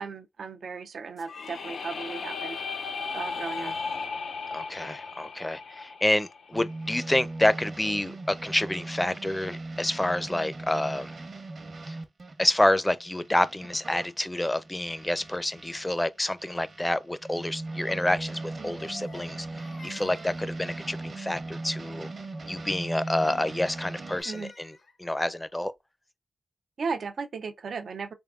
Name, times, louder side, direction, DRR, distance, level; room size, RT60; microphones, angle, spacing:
voice 1, 0.0-2.6 3.1-3.7 18.6-18.7 24.3-24.5 26.8-28.1, right 5 dB, 85° right, 0.4 m, -35 dB
sound 1, 1.2-7.0, left 4 dB, 90° left, 0.4 m, -36 dB
voice 2, 4.5-11.1 11.9-12.0 12.4-22.1 22.5-25.7, left 1 dB, 15° left, 0.4 m, -28 dB
sound 2, 6.5-16.0 16.4-24.2, right 2 dB, 60° right, 0.9 m, -39 dB
Crying sobbing, 18.8-21.3 23.5-25.0, left 3 dB, 70° left, 0.9 m, -51 dB
3.5 x 3.5 x 2.3 m
cardioid pair, 65°, 0 cm